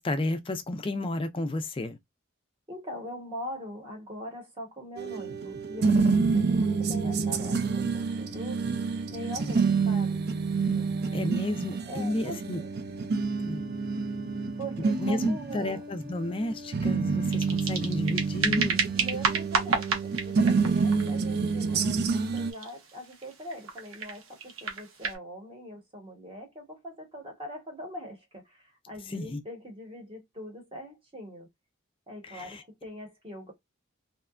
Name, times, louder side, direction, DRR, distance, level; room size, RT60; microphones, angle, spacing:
voice 1, 0.0-2.0 11.1-12.6 13.4-13.6 15.0-18.8 29.1-29.4 32.2-32.6, left 1 dB, 25° left, 0.4 m, -32 dB
voice 2, 2.7-8.6 9.1-10.2 10.7-11.2 11.9-12.7 14.6-15.8 18.9-31.5 32.1-33.5, equal, 25° right, 0.9 m, -42 dB
sound 1, 5.0-22.5, right 4 dB, 50° right, 0.4 m, -28 dB
sound 2, 17.2-25.2, right 4 dB, 75° right, 0.8 m, -33 dB
2.8 x 2.2 x 2.3 m
head